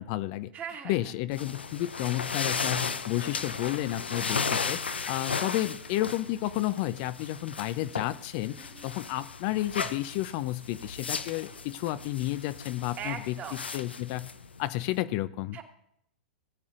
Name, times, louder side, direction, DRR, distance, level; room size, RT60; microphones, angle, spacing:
voice 1, 0.0-0.5 0.9-4.8 5.1-13.4 13.7-14.3 14.6-15.6, left 16 dB, 50° left, 14 dB, 0.5 m, -31 dB
voice 2, 0.5-1.1 5.4-5.5 8.6-8.9 13.0-13.6 15.5-15.6, right 8 dB, 30° right, 4 dB, 1.7 m, -40 dB
sound 1, 1.3-15.0, left 5 dB, 90° left, 0.7 m, -35 dB
17.5 x 8.5 x 2.5 m, 0.73 s
hypercardioid pair, 105°, 6 cm